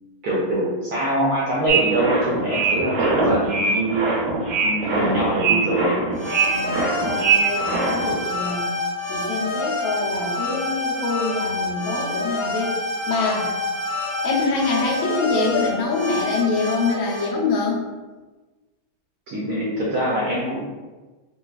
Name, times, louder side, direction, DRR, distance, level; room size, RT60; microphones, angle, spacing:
voice 1, 0.2-4.1 4.6-6.0 19.3-20.6, right 1 dB, 70° right, -6 dB, 0.9 m, -24 dB
sound 1, 1.7-8.2, right 4 dB, 90° right, 1.6 m, -22 dB
voice 2, 4.8-5.6 6.5-8.7 9.1-12.7 13.1-13.5 14.2-17.8, left 3 dB, 85° left, -3 dB, 1.4 m, -25 dB
sound 2, 6.1-17.3, left 2 dB, 55° left, 1.4 m, -27 dB
4.0 x 2.2 x 2.3 m, 1.2 s
omnidirectional pair, 2.2 m